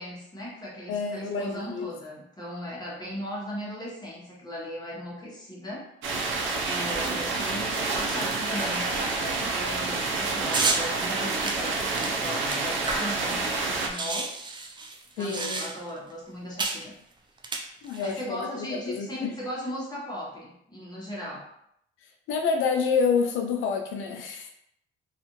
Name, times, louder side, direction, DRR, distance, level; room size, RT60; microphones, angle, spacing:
voice 1, 0.0-5.9 6.7-14.3 15.2-16.9 18.0-21.5, equal, 20° left, -5 dB, 1.0 m, -37 dB
voice 2, 0.9-1.9 15.2-15.6 17.8-19.4 22.3-24.6, left 5 dB, 85° left, 3 dB, 0.4 m, -28 dB
sound 1, 6.0-13.9, right 3 dB, 75° right, 0.5 m, -28 dB
sound 2, 10.5-10.8 11.4-13.3 13.5-13.6 13.8-16.0 16.6-16.8 17.4-18.1, right 3 dB, 25° right, 0.4 m, -30 dB
2.4 x 2.4 x 2.9 m, 0.73 s
cardioid pair, 90°, 20 cm